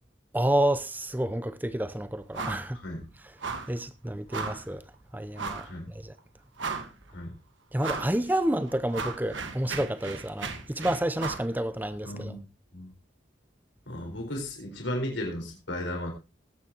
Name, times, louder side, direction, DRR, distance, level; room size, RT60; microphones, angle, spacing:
voice 1, 0.3-2.8 3.7-4.8 5.1-6.1 7.7-12.3, right 1 dB, 10° right, 0.6 m, -29 dB
sound 1, 2.3-2.7 3.0-3.1 3.4-3.8 4.3-4.7 5.4-5.7 6.2-6.3 6.6-7.1 7.8-8.2 8.5-11.5, right 4 dB, 90° right, 1.6 m, -35 dB
voice 2, 2.7-3.1 5.6-5.9 7.1-7.3 12.0-12.4 12.7-12.9 13.9-16.1, left 1 dB, 85° left, 4.3 m, -35 dB
20.0 x 8.9 x 2.9 m
head